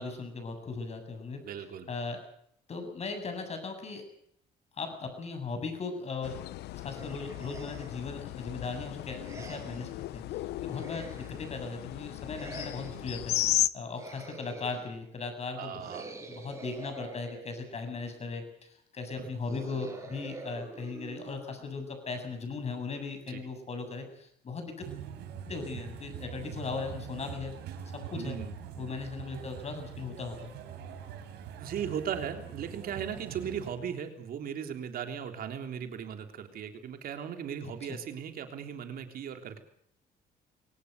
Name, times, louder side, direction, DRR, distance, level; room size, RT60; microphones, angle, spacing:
voice 1, 0.0-1.4 1.9-2.2 2.7-4.0 4.7-6.4 6.8-15.9 16.3-24.8 25.5-27.5 27.9-28.4 28.8-30.5 37.9-38.0, left 4 dB, 40° left, 7 dB, 7.8 m, -38 dB
voice 2, 1.4-1.9 15.6-16.1 19.2-19.3 23.3-23.4 28.2-28.5 31.6-39.6, right 8 dB, 60° right, 6 dB, 3.5 m, -37 dB
sound 1, 6.2-13.7, left 15 dB, 75° left, 0.9 m, -35 dB
sound 2, 6.9-8.1 9.2-10.0 10.7-11.6 12.3-13.2 13.9-15.0 15.8-17.9 19.4-21.8, right 3 dB, 20° right, 7.9 m, -46 dB
sound 3, 24.8-33.7, right 8 dB, 85° right, 4.4 m, -43 dB
23.5 x 18.5 x 8.2 m, 0.69 s
cardioid pair, 110°, 17 cm